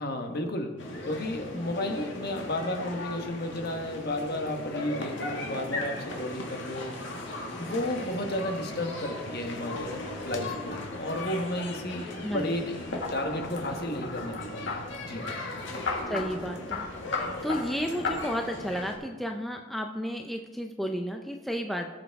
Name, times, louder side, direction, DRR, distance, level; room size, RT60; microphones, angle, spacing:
voice 1, 0.0-15.2, left 1 dB, 50° left, 4 dB, 1.3 m, -33 dB
sound 1, 0.8-18.9, left 2 dB, 65° left, 1.9 m, -38 dB
sound 2, 13.0-14.8 15.9-16.3 16.7-16.8 17.1-17.6 18.0-18.1, left 5 dB, 85° left, 3.7 m, -33 dB
voice 2, 16.1-21.9, equal, ahead, 3 dB, 0.4 m, -33 dB
18.5 x 7.3 x 3.5 m, 1.4 s
head